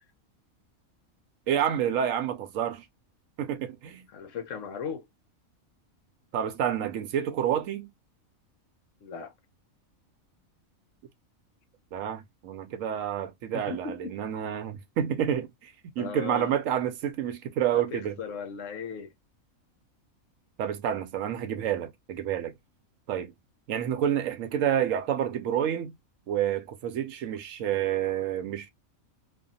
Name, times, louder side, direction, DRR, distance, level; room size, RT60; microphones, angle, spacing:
voice 1, 1.5-2.8 3.4-4.1 6.3-7.9 11.9-18.2 20.6-22.5 23.1-23.3 23.7-25.9 26.3-28.7, right 9 dB, 75° right, 0.9 m, -29 dB
voice 2, 4.1-5.1 9.0-9.3 13.5-14.1 16.0-16.5 17.7-19.1, left 6 dB, 70° left, 1.0 m, -37 dB
2.6 x 2.4 x 2.6 m
omnidirectional pair, 1.4 m